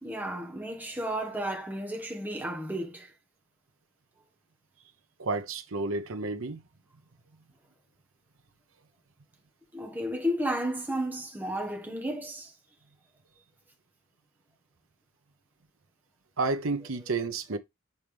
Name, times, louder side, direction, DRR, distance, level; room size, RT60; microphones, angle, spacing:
voice 1, 0.0-3.1 9.7-12.5, equal, 10° right, 1.4 m, -33 dB
voice 2, 5.2-6.6 16.4-17.6, right 3 dB, 65° right, 0.9 m, -31 dB
7.0 x 4.6 x 3.4 m
head